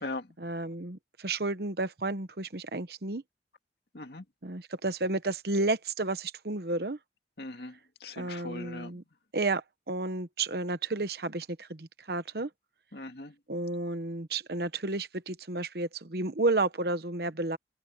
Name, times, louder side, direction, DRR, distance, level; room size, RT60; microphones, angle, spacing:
voice 1, 0.4-3.2 4.4-7.0 8.2-9.0 9.3-12.5 13.5-17.6, right 2 dB, 55° right, 1.1 m, -32 dB
voice 2, 7.4-7.7 8.0-8.9 12.9-13.3, left 2 dB, 60° left, 2.2 m, -39 dB
head